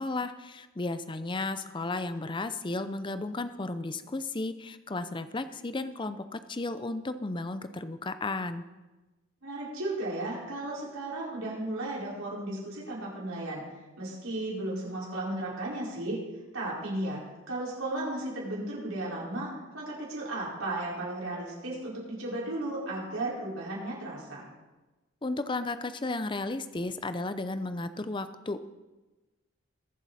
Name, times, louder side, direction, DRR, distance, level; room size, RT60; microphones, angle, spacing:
voice 1, 0.0-8.6 25.2-28.6, left 2 dB, 25° left, 11 dB, 0.5 m, -34 dB
voice 2, 9.4-13.6 14.0-16.2 16.5-17.2 17.5-24.5, right 1 dB, 80° right, -6 dB, 4.7 m, -35 dB
21.0 x 7.6 x 4.1 m, 1.1 s
head